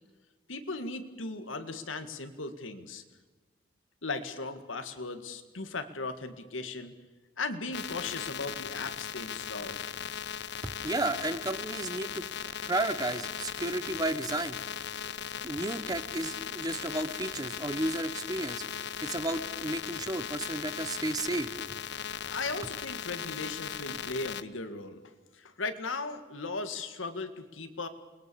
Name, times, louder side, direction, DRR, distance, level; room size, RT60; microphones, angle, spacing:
voice 1, 0.5-3.0 4.0-6.9 7.4-9.8 22.3-25.0 25.3-27.9, left 3 dB, 85° left, 8 dB, 2.0 m, -37 dB
sound 1, 7.7-24.4, left 8 dB, 60° left, 0.7 m, -38 dB
voice 2, 10.8-12.3 12.6-14.6 15.0-15.1 15.4-18.6 19.0-21.5, right 2 dB, 20° right, 12 dB, 1.0 m, -33 dB
28.0 x 21.5 x 7.0 m, 1.2 s
head